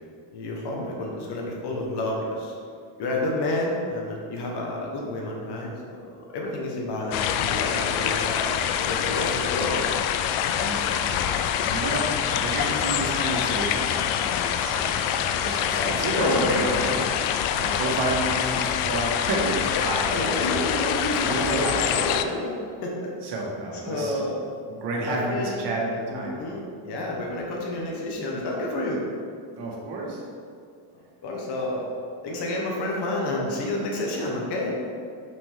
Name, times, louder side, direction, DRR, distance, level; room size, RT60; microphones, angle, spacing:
voice 1, 0.3-2.6 3.0-8.5 8.8-9.7 15.7-17.1 20.1-23.1 23.8-24.3 25.0-25.5 26.1-29.0 30.9-31.9 32.2-34.8, left 1 dB, 55° left, -1 dB, 1.3 m, -29 dB
sound 1, 7.1-22.2, left 9 dB, 85° left, 0.6 m, -25 dB
voice 2, 10.5-15.0 15.3-17.0 17.6-20.7 21.1-21.8 23.2-24.2 24.7-26.4 29.6-30.2, right 2 dB, 55° right, -2 dB, 1.5 m, -31 dB
6.2 x 6.1 x 3.6 m, 2.3 s
cardioid pair, 150°, 48 cm